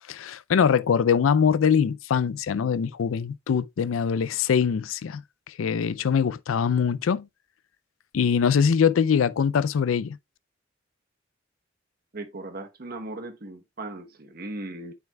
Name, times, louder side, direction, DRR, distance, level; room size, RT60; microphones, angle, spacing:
voice 1, 0.1-5.2 5.6-7.3 8.1-10.2, left 7 dB, 90° left, 0.4 m, -23 dB
voice 2, 12.1-14.9, right 2 dB, 50° right, 1.0 m, -37 dB
9.1 x 5.6 x 2.2 m
head